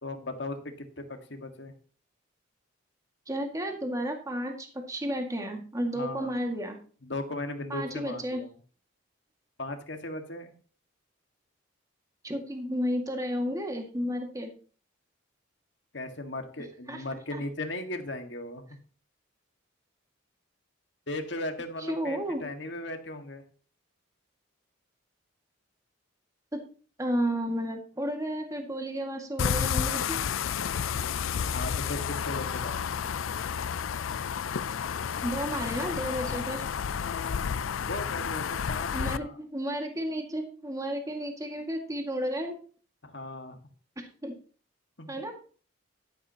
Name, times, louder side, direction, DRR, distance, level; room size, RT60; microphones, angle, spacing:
voice 1, 0.0-1.7 5.9-6.3 7.0-8.5 9.6-10.5 15.9-18.7 21.1-23.4 31.5-33.1 37.7-39.4 43.0-43.6 45.0-45.1, left 2 dB, 60° left, 6 dB, 1.8 m, -37 dB
voice 2, 3.3-6.8 7.7-8.4 12.2-14.5 16.9-17.0 21.9-22.4 26.5-26.6 27.0-30.2 35.2-36.6 38.9-42.6 44.0-44.3 45.1-45.3, equal, 15° right, 3 dB, 2.0 m, -32 dB
sound 1, 29.4-39.2, left 7 dB, 85° left, 0.5 m, -31 dB
12.5 x 11.0 x 2.9 m, 0.40 s
head